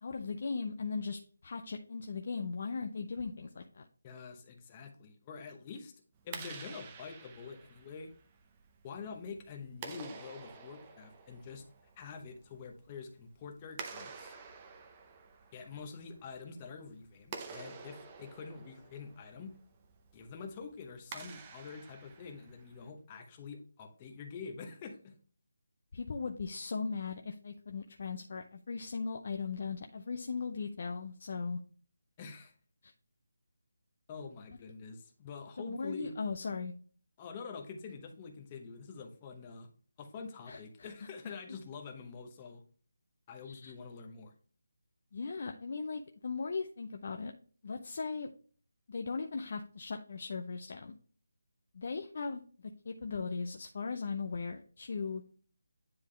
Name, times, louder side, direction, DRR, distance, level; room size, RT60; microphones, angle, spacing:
voice 1, 0.0-3.9 25.9-31.6 32.8-32.9 35.6-36.7 40.5-40.9 43.4-43.7 45.1-47.3 47.6-48.3 48.9-50.9 51.7-52.4 52.8-55.2, left 4 dB, 40° left, 4 dB, 0.5 m, -38 dB
voice 2, 4.0-5.9 6.2-8.1 8.8-11.6 12.0-14.4 15.5-19.5 20.1-25.1 32.2-32.5 34.1-36.2 37.2-39.7 40.0-42.6 43.3-44.3, left 5 dB, 20° left, 3 dB, 0.9 m, -46 dB
Clapping, 6.2-22.9, right 5 dB, 15° right, 0.6 m, -50 dB
9.7 x 3.5 x 3.3 m, 0.43 s
figure-of-eight pair, 170°, 0 cm